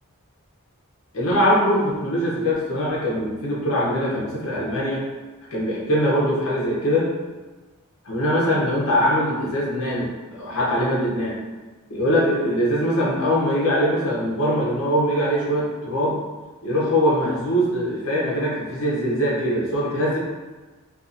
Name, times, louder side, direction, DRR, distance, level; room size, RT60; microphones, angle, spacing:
voice 1, 1.1-5.0 5.5-7.1 8.0-11.4 11.9-16.2 16.6-20.2, equal, 65° left, -6 dB, 0.7 m, -22 dB
2.7 x 2.4 x 2.4 m, 1.2 s
head